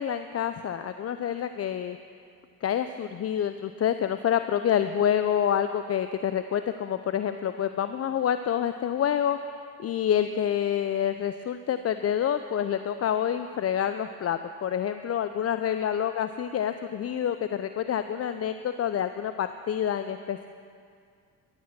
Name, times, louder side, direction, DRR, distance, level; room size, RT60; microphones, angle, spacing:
voice 1, 0.0-2.0 2.6-9.4 9.8-20.5, left 9 dB, 35° left, 10 dB, 0.6 m, -27 dB
15.5 x 12.0 x 6.0 m, 2.2 s
hypercardioid pair, 60°, 42 cm